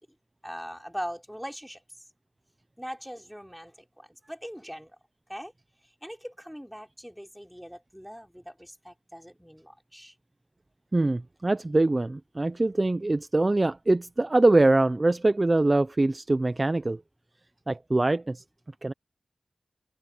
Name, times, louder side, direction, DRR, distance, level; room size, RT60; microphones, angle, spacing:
voice 1, 0.4-1.8 2.8-4.9 5.3-5.5 6.0-10.1, equal, ahead, 4.0 m, -41 dB
voice 2, 10.9-17.0 17.7-18.4 18.8-18.9, right 2 dB, 35° right, 0.6 m, -23 dB
wide cardioid pair, 70°, 0 cm